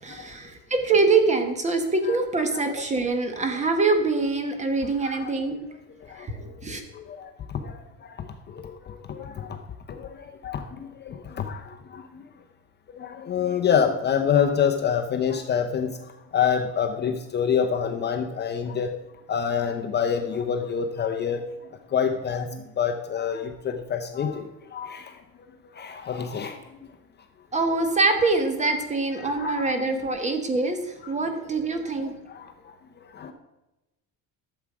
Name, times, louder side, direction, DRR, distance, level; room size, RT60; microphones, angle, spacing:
voice 1, 0.0-5.6 6.1-6.8 27.5-32.1, right 3 dB, 20° right, 6 dB, 1.2 m, -24 dB
voice 2, 6.1-6.4 6.9-9.6 9.9-12.2 12.9-16.0 16.3-19.0 19.3-21.4 21.9-25.2 25.7-26.6 29.2-29.7 32.3-33.3, left 7 dB, 30° left, 6 dB, 0.7 m, -27 dB
12.0 x 7.3 x 4.9 m, 1.0 s
cardioid pair, 160°, 36 cm